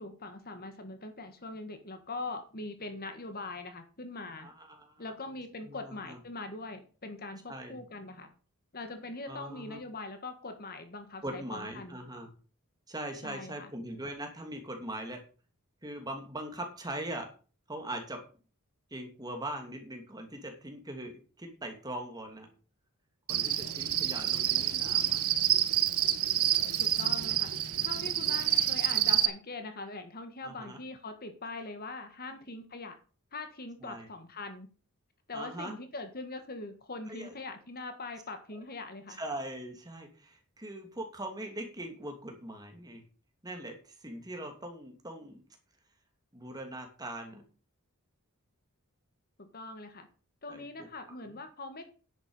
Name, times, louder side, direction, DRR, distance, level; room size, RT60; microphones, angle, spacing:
voice 1, 0.0-4.5 5.0-8.3 8.7-12.0 13.2-13.7 26.8-27.5 27.8-32.9 33.3-34.7 35.3-39.2 49.4-50.1 50.4-51.9, left 3 dB, 45° left, 7 dB, 1.7 m, -42 dB
voice 2, 4.4-5.0 5.6-6.2 7.5-7.8 9.3-9.8 11.2-12.3 12.9-15.2 15.8-17.3 17.7-18.2 18.9-22.5 23.3-25.2 27.9-28.0 30.4-30.8 33.8-34.1 35.3-35.7 37.1-37.4 39.1-43.0 43.4-45.4 46.3-47.4 50.5-50.6 51.2-51.4, right 1 dB, 15° right, 3 dB, 2.7 m, -41 dB
Cricket, 23.3-29.3, right 11 dB, 75° right, 1.1 m, -28 dB
10.5 x 8.2 x 5.6 m, 0.37 s
head